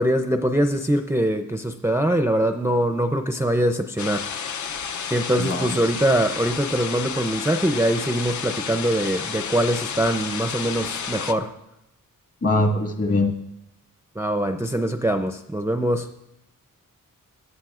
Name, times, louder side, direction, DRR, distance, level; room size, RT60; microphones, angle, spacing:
voice 1, 0.0-4.4 5.1-11.5 14.2-16.1, right 1 dB, 10° right, 6 dB, 0.4 m, -23 dB
sound 1, 4.0-11.3, left 6 dB, 65° left, 0.6 m, -31 dB
voice 2, 5.4-5.8 12.4-13.3, left 2 dB, 45° left, 1 dB, 1.8 m, -22 dB
19.5 x 12.0 x 2.4 m, 0.87 s
wide cardioid pair, 140°, 33 cm